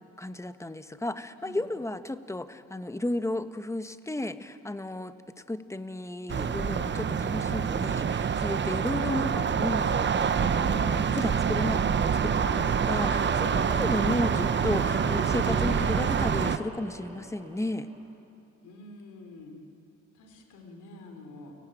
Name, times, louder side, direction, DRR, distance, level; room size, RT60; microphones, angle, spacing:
voice 1, 0.0-5.1 5.5-17.9, left 1 dB, 10° left, 11 dB, 1.1 m, -33 dB
sound 1, 6.3-16.6, right 7 dB, 40° right, 0.9 m, -26 dB
sound 2, 10.3-18.0, right 2 dB, 15° right, 7.9 m, -39 dB
voice 2, 18.6-19.7 20.1-21.5, left 2 dB, 80° left, 4 dB, 3.8 m, -48 dB
29.5 x 18.0 x 9.1 m, 2.6 s
cardioid pair, 90°, 30 cm